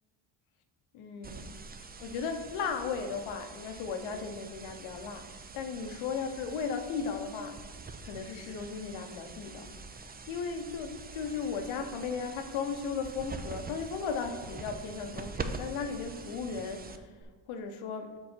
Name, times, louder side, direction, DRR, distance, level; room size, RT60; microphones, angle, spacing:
voice 1, 0.9-1.5 2.0-5.3 5.5-7.6 8.0-9.7 10.3-17.1 17.5-18.1, left 5 dB, 90° left, 6 dB, 0.9 m, -36 dB
sound 1, 1.2-17.2, right 4 dB, 20° right, 0.5 m, -45 dB
6.7 x 4.6 x 4.4 m, 1.5 s
cardioid pair, 75°, 48 cm